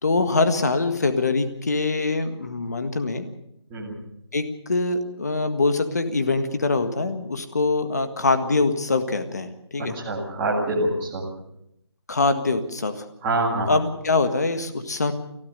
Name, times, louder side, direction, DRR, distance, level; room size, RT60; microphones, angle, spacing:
voice 1, 0.0-3.3 4.3-10.0 12.1-13.1 13.7-15.1, left 3 dB, 35° left, 9 dB, 1.7 m, -23 dB
voice 2, 9.8-11.2 13.2-13.7, right 2 dB, 5° right, -6 dB, 1.9 m, -25 dB
30.0 x 13.0 x 6.7 m, 0.79 s
figure-of-eight pair, 180°, 14 cm